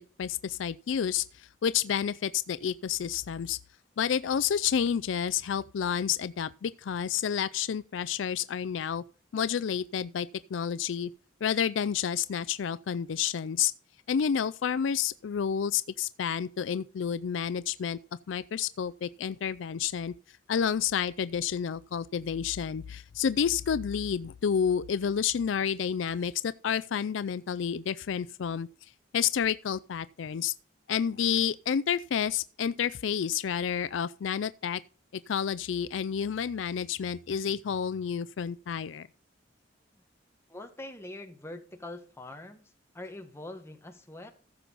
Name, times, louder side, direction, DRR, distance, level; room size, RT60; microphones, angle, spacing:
voice 1, 0.0-3.6 4.0-9.0 9.3-11.1 11.4-13.7 14.1-18.0 18.3-20.1 20.5-28.7 29.1-30.5 30.9-34.8 35.1-39.1, left 8 dB, 70° left, 0.4 m, -30 dB
voice 2, 40.5-44.3, left 1 dB, 15° left, 1.4 m, -44 dB
14.5 x 6.9 x 4.0 m
head